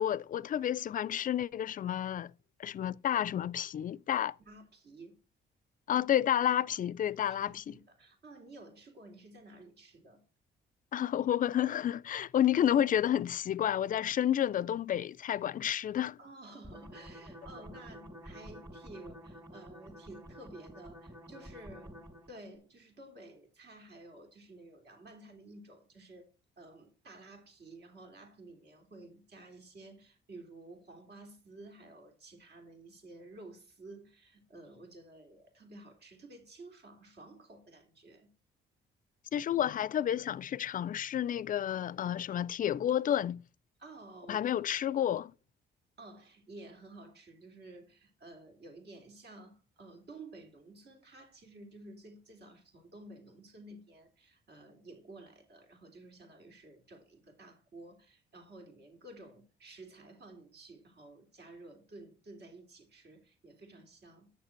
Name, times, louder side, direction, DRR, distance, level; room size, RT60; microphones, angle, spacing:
voice 1, 0.0-2.3 2.6-4.4 5.9-7.7 10.9-16.2 39.3-43.4 44.3-45.3, left 10 dB, 45° left, 0.4 m, -30 dB
voice 2, 4.4-5.2 7.5-10.2 16.2-26.3 26.6-38.3 43.8-44.5 46.0-64.3, right 2 dB, 55° right, 2.7 m, -52 dB
sound 1, 16.6-22.4, equal, 15° right, 2.4 m, -50 dB
8.8 x 6.6 x 4.4 m
cardioid pair, 90°, 20 cm